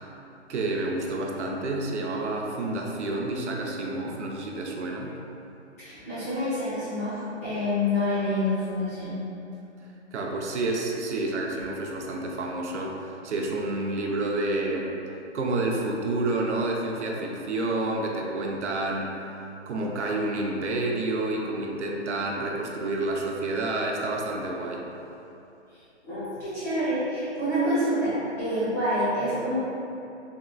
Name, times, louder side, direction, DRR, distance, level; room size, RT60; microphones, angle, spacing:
voice 1, 0.5-5.1 10.1-14.9 15.3-19.3 19.7-24.8, right 2 dB, 70° right, 0 dB, 0.5 m, -29 dB
voice 2, 5.8-9.2 25.7-29.5, left 1 dB, 15° left, -15 dB, 0.5 m, -27 dB
3.5 x 2.4 x 2.3 m, 2.8 s
hypercardioid pair, 155°, 36 cm